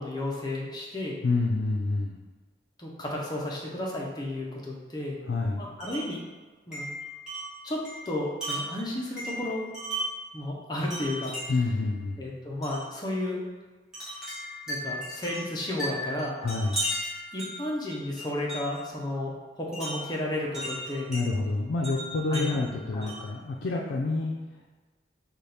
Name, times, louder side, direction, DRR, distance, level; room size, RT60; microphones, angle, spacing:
voice 1, 0.0-1.2 2.8-5.2 5.5-6.2 6.7-7.0 7.6-9.7 10.3-11.5 12.2-13.4 14.7-16.4 16.8-16.9 17.3-21.1 22.3-22.6 22.9-23.1, left 1 dB, 20° left, -3 dB, 0.6 m, -33 dB
voice 2, 1.2-2.2 5.3-5.6 11.5-12.2 16.4-16.8 21.1-24.3, left 3 dB, 75° left, -2 dB, 0.4 m, -28 dB
Wind chime, 5.8-6.2 6.7-10.3 10.9-11.7 12.6-12.9 13.9-18.9 19.7-21.3 21.8-23.4, equal, 5° right, 1.1 m, -36 dB
4.1 x 2.3 x 3.3 m, 1.3 s
head